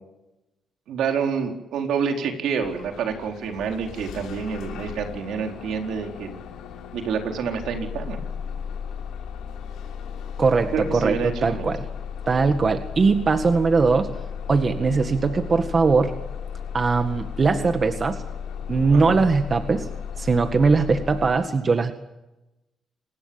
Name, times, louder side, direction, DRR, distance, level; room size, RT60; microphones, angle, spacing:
voice 1, 0.9-6.4 6.9-8.2 10.7-11.7 18.9-19.2, right 6 dB, 80° right, 4 dB, 4.3 m, -28 dB
Bus / Engine starting, 2.6-21.3, left 7 dB, 85° left, 5.9 m, -35 dB
voice 2, 10.4-11.9 12.3-14.2 14.5-16.1 16.7-18.2 18.7-19.9 20.2-21.9, right 4 dB, 40° right, 8 dB, 1.8 m, -20 dB
27.0 x 19.5 x 7.2 m, 0.98 s
cardioid pair, 85°, 0 cm